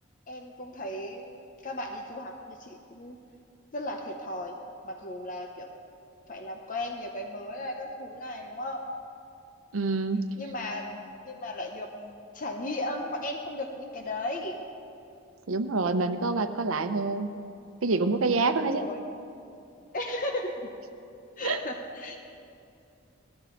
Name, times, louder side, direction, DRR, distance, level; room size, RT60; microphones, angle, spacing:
voice 1, 0.3-3.2 3.7-4.6 4.8-5.7 6.3-8.8 10.4-14.6 18.5-19.0 19.9-20.7 21.4-22.2, left 1 dB, 40° left, 3 dB, 0.8 m, -36 dB
voice 2, 9.7-10.3 15.5-17.3 17.8-18.9 21.4-21.6, right 3 dB, 90° right, 9 dB, 0.7 m, -26 dB
18.5 x 13.5 x 3.9 m, 2.5 s
head